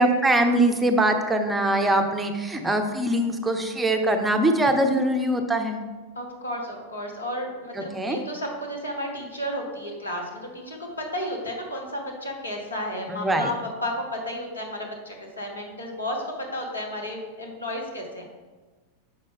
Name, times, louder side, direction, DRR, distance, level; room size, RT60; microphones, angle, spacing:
voice 1, 0.0-5.8 7.9-8.2 13.1-13.5, right 1 dB, 10° right, 5 dB, 0.6 m, -22 dB
voice 2, 6.1-13.5 13.8-18.3, equal, 80° left, 0 dB, 1.4 m, -33 dB
6.3 x 5.4 x 3.5 m, 1.3 s
figure-of-eight pair, 90°, 0 cm